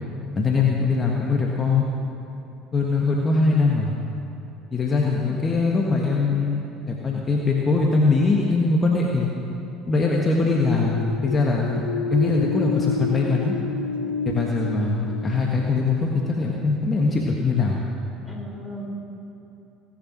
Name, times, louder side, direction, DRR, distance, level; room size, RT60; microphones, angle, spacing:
voice 1, 0.3-1.9 2.7-3.9 4.7-6.6 6.9-9.3 9.8-11.8 12.1-13.5 14.2-17.8, left 3 dB, 30° left, -1 dB, 1.6 m, -22 dB
sound 1, 10.6-16.3, left 4 dB, 80° left, 1.0 m, -30 dB
voice 2, 18.2-18.8, equal, ahead, -2 dB, 4.1 m, -38 dB
18.5 x 9.1 x 6.2 m, 2.9 s
hypercardioid pair, 65°, 0 cm